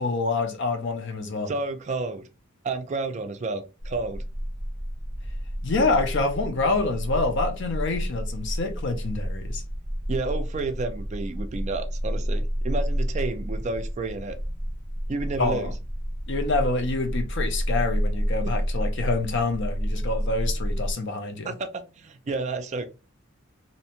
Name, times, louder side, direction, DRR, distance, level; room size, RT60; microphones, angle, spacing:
voice 1, 0.0-1.5 5.6-9.6 15.4-15.7 16.3-21.5, left 3 dB, 55° left, 0.6 m, -27 dB
voice 2, 1.5-2.3 2.6-4.2 10.1-14.4 15.1-15.7 18.4-18.5 21.4-22.8, right 3 dB, 35° right, 0.3 m, -31 dB
sound 1, 3.8-20.9, equal, 75° left, 1.6 m, -30 dB
2.7 x 2.1 x 2.8 m
head